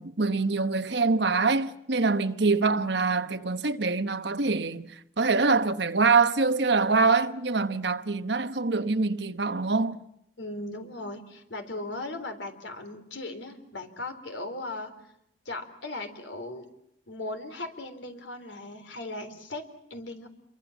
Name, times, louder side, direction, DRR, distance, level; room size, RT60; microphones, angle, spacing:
voice 1, 0.0-10.0, right 4 dB, 70° right, 1.2 m, -25 dB
voice 2, 10.4-14.9 15.5-16.7 17.1-19.6 19.9-20.3, left 2 dB, 90° left, 3.9 m, -37 dB
28.0 x 23.5 x 7.3 m
head